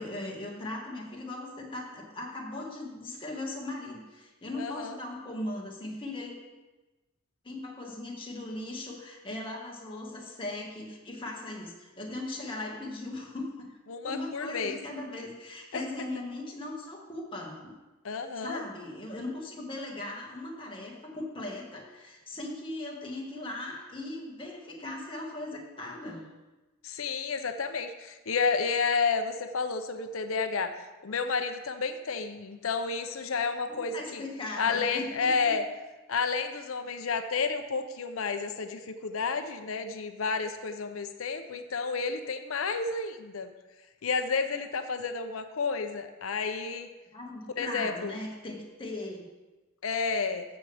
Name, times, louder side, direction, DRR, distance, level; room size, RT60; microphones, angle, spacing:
voice 1, 0.0-6.3 7.4-13.8 14.0-17.7 18.4-26.2 33.7-35.5 47.1-49.2, left 2 dB, 25° left, -2 dB, 1.8 m, -38 dB
voice 2, 4.6-4.9 13.9-14.8 15.7-15.8 18.0-18.6 26.8-30.7 31.0-34.2 34.6-35.6 36.1-43.5 44.0-46.9 47.6-48.1 49.8-50.4, left 5 dB, 80° left, 8 dB, 0.7 m, -31 dB
14.0 x 7.0 x 3.5 m, 1.1 s
head